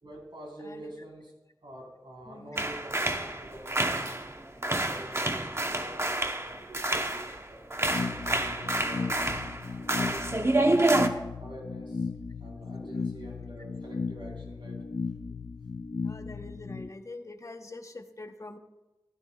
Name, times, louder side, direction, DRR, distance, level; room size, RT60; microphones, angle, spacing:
voice 1, 0.0-1.3 1.6-9.1 9.8-12.1 12.4-14.8, right 1 dB, 85° right, -2 dB, 4.0 m, -47 dB
voice 2, 0.6-0.9 2.3-2.6 12.8-12.9 16.0-18.6, left 2 dB, 40° left, 6 dB, 0.9 m, -44 dB
sound 1, 2.6-4.4 4.6-7.4 7.7-11.1, right 2 dB, 35° right, 0.9 m, -28 dB
sound 2, 7.9-16.9, left 4 dB, 70° left, 0.4 m, -36 dB
15.0 x 13.5 x 2.3 m, 1.1 s
wide cardioid pair, 60°, 8 cm